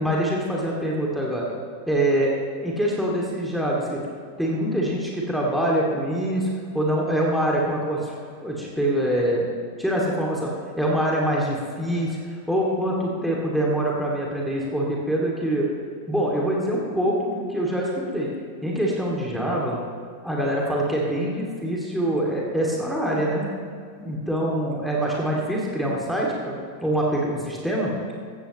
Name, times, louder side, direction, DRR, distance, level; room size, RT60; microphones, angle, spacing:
voice 1, 0.0-1.5 1.9-2.3 2.6-4.0 4.4-8.1 8.4-10.5 10.8-15.7 16.1-18.3 18.6-19.8 20.2-23.5 23.9-27.9, right 1 dB, ahead, -4 dB, 2.6 m, -24 dB
15.5 x 15.0 x 3.2 m, 2.2 s
figure-of-eight pair, 90°, 0 cm